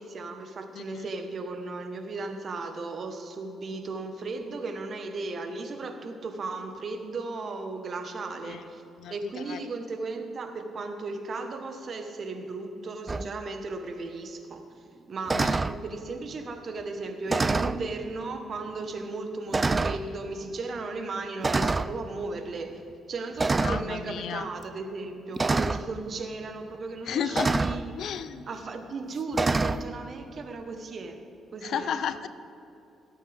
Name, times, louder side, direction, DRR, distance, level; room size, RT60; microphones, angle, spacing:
voice 1, 0.0-8.8 9.1-14.6 15.1-27.9 28.5-31.2 31.5-32.0, right 3 dB, 50° right, 6 dB, 1.2 m, -36 dB
voice 2, 0.7-1.1 8.5-8.6 9.0-9.1 9.5-9.6 15.4-15.5 23.6-24.5 27.1-27.6 28.0-28.5 31.6-32.3, left 8 dB, 70° left, 12 dB, 0.5 m, -32 dB
sound 1, 13.1-13.3 15.3-15.8 17.3-17.8 18.7-18.8 19.5-20.0 21.4-21.9 23.4-23.9 25.4-25.8 27.4-27.8 29.3-29.8, right 3 dB, 25° right, 0.3 m, -25 dB
18.0 x 8.5 x 3.5 m, 2.7 s
cardioid pair, 90°, 0 cm